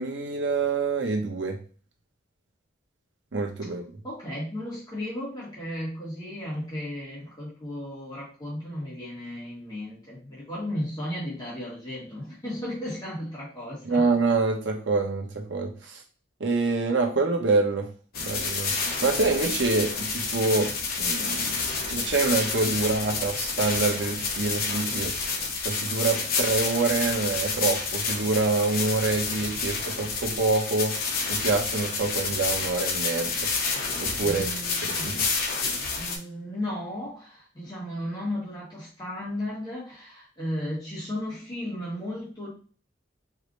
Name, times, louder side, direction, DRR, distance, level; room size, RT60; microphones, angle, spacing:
voice 1, 0.0-1.6 3.3-3.8 13.8-16.0 16.4-17.9 18.2-20.7 21.0-21.6 21.9-25.1 25.6-30.9 31.3-33.5 34.0-34.5 34.8-35.3, right 3 dB, 70° right, 2 dB, 1.0 m, -26 dB
voice 2, 4.0-14.0 34.2-35.2 36.0-42.5, left 1 dB, 20° left, -7 dB, 1.7 m, -35 dB
sound 1, 18.1-36.2, left 4 dB, 50° left, 0.9 m, -29 dB
4.8 x 2.7 x 3.1 m, 0.40 s
head